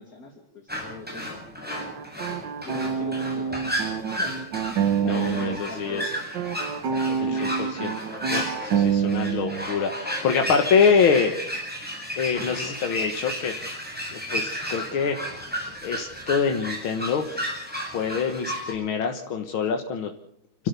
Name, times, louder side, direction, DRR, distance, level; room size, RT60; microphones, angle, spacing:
voice 1, 0.0-1.4 2.3-4.3 5.0-6.1 6.8-7.6, left 3 dB, 45° left, 2 dB, 2.9 m, -42 dB
sound 1, 0.7-18.7, equal, 5° right, 8.0 m, -33 dB
sound 2, 1.7-5.6 5.9-9.7, right 7 dB, 65° right, 1.7 m, -27 dB
voice 2, 5.0-6.0 6.5-6.7 7.2-7.9 8.3-11.4 12.2-13.5 14.1-15.5 15.8-17.5 17.8-20.1, left 6 dB, 85° left, 4 dB, 2.3 m, -25 dB
29.5 x 13.0 x 6.9 m, 0.70 s
omnidirectional pair, 2.2 m